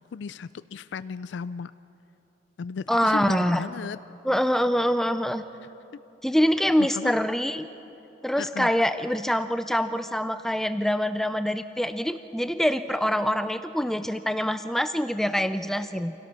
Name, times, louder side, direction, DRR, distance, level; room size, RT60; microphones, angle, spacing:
voice 1, 0.1-1.7 2.6-4.0 6.8-7.2 8.4-8.7, left 5 dB, 85° left, 14 dB, 0.4 m, -35 dB
voice 2, 2.9-3.6 4.2-5.4 6.2-7.7 8.2-16.1, equal, ahead, 10 dB, 0.4 m, -25 dB
26.0 x 17.0 x 6.1 m, 2.9 s
head